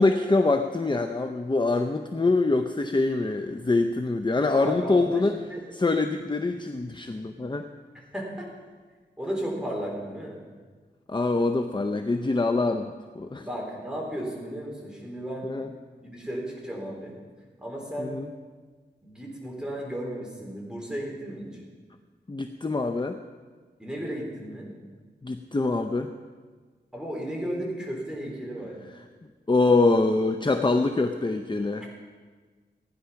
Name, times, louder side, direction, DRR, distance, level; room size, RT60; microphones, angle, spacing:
voice 1, 0.0-5.4 5.7-7.7 11.1-13.5 15.4-15.7 18.0-18.3 22.3-23.2 25.2-26.1 29.5-31.8, left 3 dB, 25° left, 6 dB, 0.6 m, -24 dB
voice 2, 4.4-5.6 7.9-8.5 9.2-10.4 13.4-15.5 16.0-17.2 17.6-18.1 19.0-21.6 23.8-24.7 26.9-28.8, equal, 5° right, -2 dB, 3.7 m, -34 dB
16.0 x 9.9 x 5.8 m, 1.4 s
wide cardioid pair, 85°, 18 cm